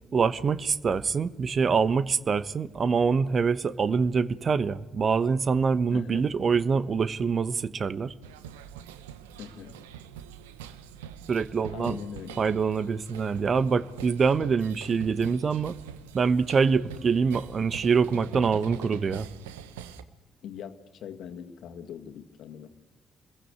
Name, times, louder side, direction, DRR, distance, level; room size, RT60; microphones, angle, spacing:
voice 1, 0.1-8.1 11.3-12.0 12.4-15.7 16.1-19.3, right 5 dB, 45° right, 1.2 m, -25 dB
voice 2, 5.9-6.3 9.4-9.8 11.7-12.4 20.4-22.7, left 8 dB, 60° left, 2.1 m, -41 dB
sound 1, 8.2-20.0, right 9 dB, 80° right, 1.1 m, -44 dB
29.0 x 22.0 x 8.3 m
figure-of-eight pair, 40°, 0 cm